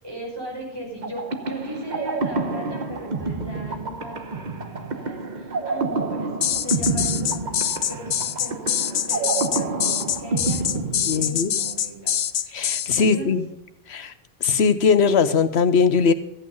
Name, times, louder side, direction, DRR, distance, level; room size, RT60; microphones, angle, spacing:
voice 1, 0.0-8.8 9.1-12.1 12.4-12.7 13.0-13.3, right 1 dB, 20° right, -4 dB, 5.4 m, -38 dB
sound 1, 1.0-11.7, right 3 dB, 45° right, 1.1 m, -28 dB
sound 2, 6.4-13.0, left 9 dB, 70° left, 0.8 m, -24 dB
voice 2, 11.1-11.5 12.5-13.4 13.9-14.1 14.4-16.1, left 5 dB, 90° left, 11 dB, 1.1 m, -20 dB
14.0 x 8.7 x 5.4 m, 0.84 s
omnidirectional pair, 1.1 m